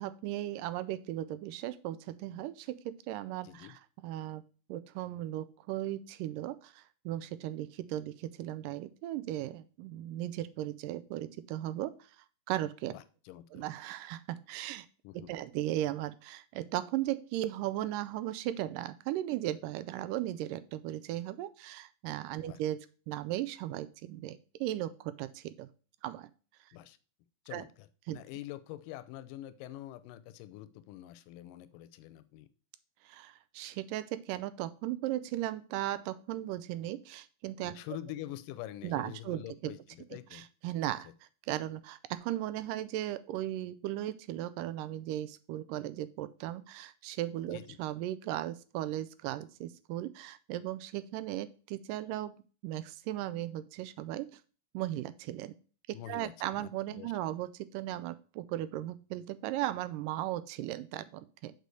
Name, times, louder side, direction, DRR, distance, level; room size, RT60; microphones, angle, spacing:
voice 1, 0.0-4.4 4.7-11.9 12.5-12.9 13.5-14.9 15.3-25.7 26.0-26.3 27.5-27.7 28.1-28.2 33.0-37.8 38.8-39.7 40.3-41.1 41.5-52.4 52.6-54.4 54.7-55.6 56.1-61.5, right 13 dB, 90° right, 15 dB, 2.2 m, -37 dB
voice 2, 3.4-3.8 12.9-13.6 15.0-15.3 22.4-22.6 26.7-27.0 27.5-32.5 37.6-40.5 40.9-41.1 47.4-47.8 55.9-57.1, left 14 dB, 85° left, 14 dB, 2.3 m, -46 dB
6.8 x 4.8 x 6.3 m, 0.38 s
omnidirectional pair, 3.7 m